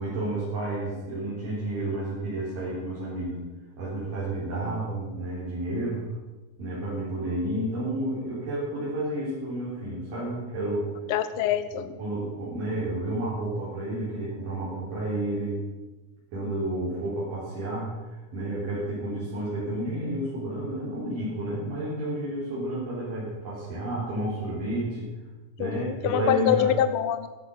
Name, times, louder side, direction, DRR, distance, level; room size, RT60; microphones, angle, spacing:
voice 1, 0.0-3.5 3.8-6.1 6.6-10.9 11.7-15.6 16.3-25.1 25.6-26.7, right 1 dB, 85° right, -8 dB, 5.3 m, -31 dB
voice 2, 11.1-11.9 25.6-27.3, left 10 dB, 85° left, 11 dB, 1.2 m, -25 dB
13.0 x 11.0 x 6.7 m, 1.1 s
omnidirectional pair, 3.7 m